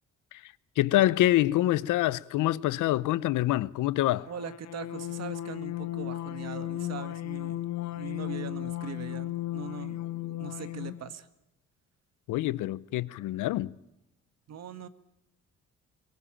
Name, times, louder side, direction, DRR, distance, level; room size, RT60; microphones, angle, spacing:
voice 1, 0.3-4.3 12.3-13.8, left 15 dB, 85° left, 0.7 m, -26 dB
sound 1, 4.3-11.1, left 14 dB, 65° left, 1.0 m, -35 dB
voice 2, 4.3-7.6 7.9-10.0 10.4-11.3 14.5-14.9, right 8 dB, 60° right, 1.6 m, -41 dB
22.5 x 18.0 x 8.8 m
cardioid pair, 90°, 30 cm